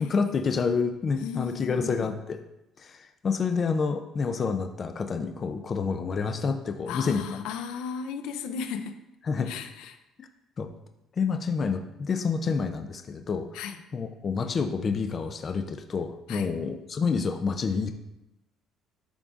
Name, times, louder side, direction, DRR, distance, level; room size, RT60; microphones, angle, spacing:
voice 1, 0.0-2.4 2.8-7.4 9.2-9.5 10.2-10.3 10.6-10.7 11.2-13.5 13.9-17.9, left 5 dB, 30° left, 6 dB, 0.4 m, -28 dB
voice 2, 1.2-2.1 6.9-9.0 9.5-9.9 13.5-13.8 16.3-16.5, left 6 dB, 85° left, 7 dB, 0.5 m, -35 dB
10.5 x 3.7 x 2.4 m, 0.93 s
cardioid pair, 165°, 0 cm